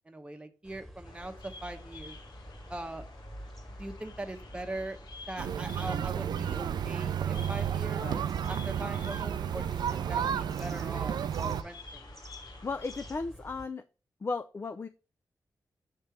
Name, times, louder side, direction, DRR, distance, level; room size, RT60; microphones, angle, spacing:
voice 1, 0.1-2.2 2.7-3.0 3.8-5.0 5.3-8.1 8.5-12.1, right 1 dB, 15° right, 5 dB, 1.0 m, -41 dB
sound 1, 0.6-13.7, equal, ahead, 1.9 m, -49 dB
Bird vocalization bird call bird song, 1.0-13.2, left 4 dB, 80° left, 1.4 m, -52 dB
sound 2, 5.4-11.6, right 9 dB, 85° right, 0.4 m, -32 dB
voice 2, 12.6-13.8 14.2-14.9, left 4 dB, 35° left, 9 dB, 0.4 m, -35 dB
7.4 x 3.3 x 5.7 m, 0.35 s
cardioid pair, 80°, 7 cm